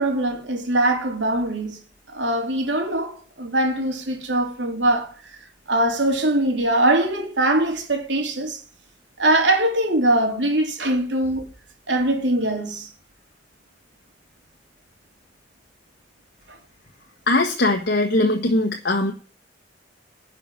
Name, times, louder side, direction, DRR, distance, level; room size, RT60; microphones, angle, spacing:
voice 1, 0.0-1.8 2.1-5.4 5.7-8.6 9.2-11.5 11.9-12.9 16.5-16.6, right 1 dB, 85° right, 3.2 m, -22 dB
voice 2, 17.3-19.1, left 2 dB, 60° left, 1.4 m, -20 dB
11.0 x 5.9 x 8.9 m
head